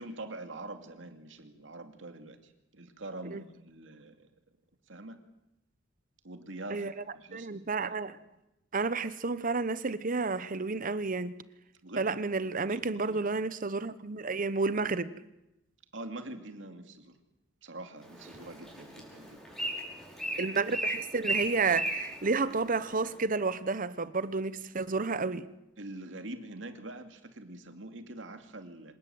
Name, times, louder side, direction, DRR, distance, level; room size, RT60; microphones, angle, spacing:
voice 1, 0.0-4.3 4.9-5.2 6.2-8.2 11.8-12.2 12.6-13.2 15.9-17.2 17.6-19.5 25.8-28.9, right 2 dB, 75° right, 2.5 m, -44 dB
voice 2, 7.3-8.1 8.7-11.3 12.0-15.1 20.4-25.5, right 4 dB, 45° right, 0.9 m, -31 dB
Bird, 18.0-23.2, right 1 dB, ahead, 6.1 m, -37 dB
26.5 x 19.0 x 7.9 m
head